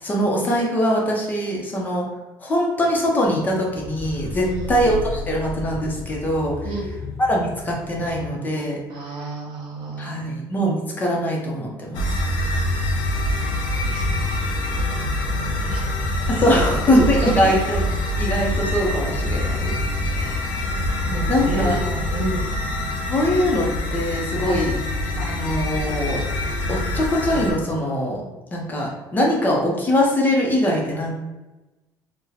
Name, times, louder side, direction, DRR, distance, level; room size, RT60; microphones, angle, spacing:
voice 1, 0.0-2.1 2.4-6.5 7.2-8.8 10.0-12.2 16.3-17.9 18.2-19.8 20.1-20.4 21.3-21.9 23.1-24.7 25.2-26.2 26.7-28.2 28.5-31.1, equal, 20° left, -2 dB, 0.6 m, -22 dB
sound 1, 2.7-8.3, left 2 dB, 45° right, 1.1 m, -34 dB
voice 2, 4.4-4.8 6.6-6.9 8.9-10.4 13.4-15.9 16.3-16.4 16.9-17.3 21.1-21.9 22.1-22.5 24.5-24.7, right 2 dB, 70° right, -1 dB, 0.9 m, -32 dB
sound 2, 11.9-27.5, left 1 dB, 75° left, 0.6 m, -25 dB
2.7 x 2.1 x 3.9 m, 1.1 s
cardioid pair, 145°, 8 cm